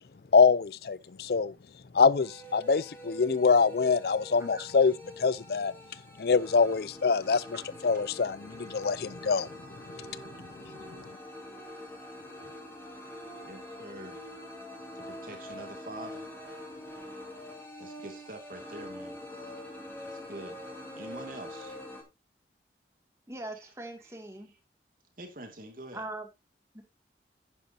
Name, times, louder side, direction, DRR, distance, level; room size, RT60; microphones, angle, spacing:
voice 1, 0.3-1.5 1.9-5.7 6.2-9.5, left 5 dB, 60° left, 0.5 m, -25 dB
sound 1, 2.2-22.0, left 1 dB, 15° left, 2.6 m, -45 dB
voice 2, 13.5-14.2 14.9-16.3 17.8-19.2 20.0-20.6 20.9-21.8 23.6-23.7 24.0-24.2 24.5-24.6 25.2-26.1, right 1 dB, 50° right, 2.5 m, -45 dB
voice 3, 23.3-24.5 25.9-26.3 26.7-26.8, right 2 dB, 15° right, 2.3 m, -41 dB
10.5 x 10.0 x 2.8 m
head